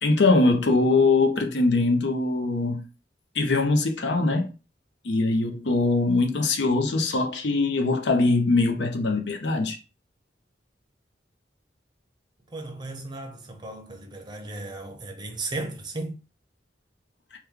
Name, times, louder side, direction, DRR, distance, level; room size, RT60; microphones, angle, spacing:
voice 1, 0.0-2.8 3.3-4.5 5.0-9.8, left 3 dB, 70° left, 0.7 m, -22 dB
voice 2, 12.5-16.2, right 2 dB, 25° right, 0.6 m, -35 dB
3.0 x 2.3 x 3.6 m
head